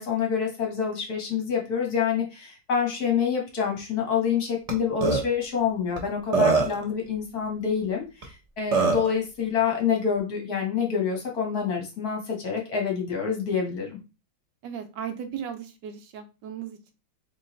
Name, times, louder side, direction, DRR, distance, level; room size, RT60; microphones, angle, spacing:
voice 1, 0.0-14.0, left 7 dB, 60° left, 0 dB, 1.7 m, -27 dB
Burping eructation, 4.7-4.8 5.0-5.2 6.0-6.1 6.3-6.8 8.2-8.3 8.7-9.1, right 4 dB, 50° right, 0.4 m, -21 dB
voice 2, 14.6-16.9, right 8 dB, 80° right, 7 dB, 1.3 m, -36 dB
3.8 x 3.2 x 3.9 m, 0.30 s
omnidirectional pair, 1.9 m